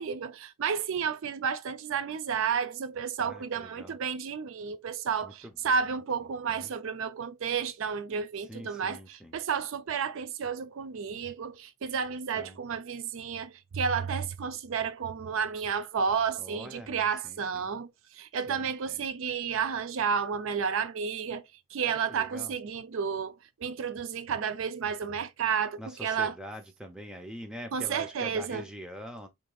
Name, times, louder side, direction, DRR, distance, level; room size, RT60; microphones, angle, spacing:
voice 1, 0.0-21.4 21.7-23.3 23.6-26.3 27.7-28.6, right 6 dB, 60° right, 0.4 m, -31 dB
voice 2, 3.2-4.0 5.2-5.9 6.5-6.7 8.5-9.3 12.3-12.6 16.4-17.7 18.5-19.0 21.8-22.6 25.8-29.3, equal, 5° right, 0.6 m, -44 dB
5.1 x 3.5 x 2.3 m
head